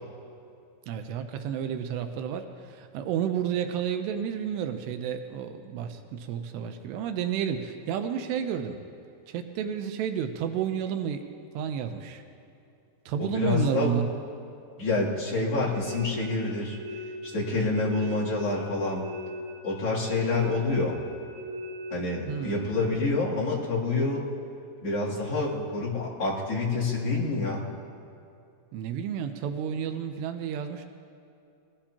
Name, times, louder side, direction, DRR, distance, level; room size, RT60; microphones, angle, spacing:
voice 1, 0.9-8.8 9.3-11.3 11.5-12.2 13.1-14.1 22.3-22.7 28.7-30.9, right 8 dB, 85° right, 7 dB, 2.9 m, -31 dB
voice 2, 13.2-14.0 14.8-16.8 17.3-19.0 19.6-21.0 21.9-24.3 24.8-27.6, left 3 dB, 40° left, -8 dB, 3.5 m, -27 dB
sound 1, 15.7-22.9, left 1 dB, 70° right, 3.0 m, -40 dB
21.5 x 17.5 x 2.9 m, 2.6 s
omnidirectional pair, 4.8 m